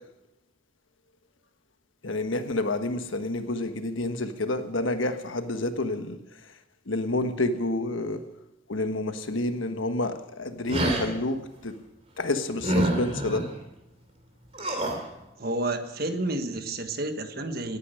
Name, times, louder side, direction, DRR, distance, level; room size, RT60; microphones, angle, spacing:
voice 1, 2.0-6.2 6.9-8.2 8.7-11.4 11.6-11.7 12.2-13.4, left 2 dB, 75° left, 8 dB, 1.3 m, -29 dB
sound 1, 10.7-11.1 12.6-13.5 14.5-15.0, right 1 dB, 30° right, 3.0 m, -26 dB
voice 2, 15.4-17.8, right 2 dB, 50° right, 8 dB, 1.3 m, -30 dB
18.0 x 9.9 x 6.5 m, 0.91 s
head